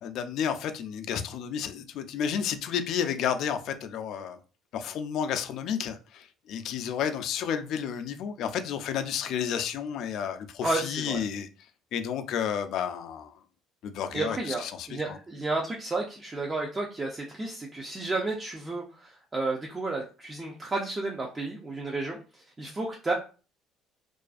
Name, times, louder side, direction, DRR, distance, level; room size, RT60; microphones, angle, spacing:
voice 1, 0.0-4.4 4.7-11.5 11.9-13.3 13.8-15.2, left 8 dB, 65° left, 0.3 m, -31 dB
voice 2, 10.6-11.2 14.1-23.1, right 3 dB, 20° right, 0.5 m, -32 dB
2.4 x 2.3 x 2.4 m
cardioid pair, 95°, 0 cm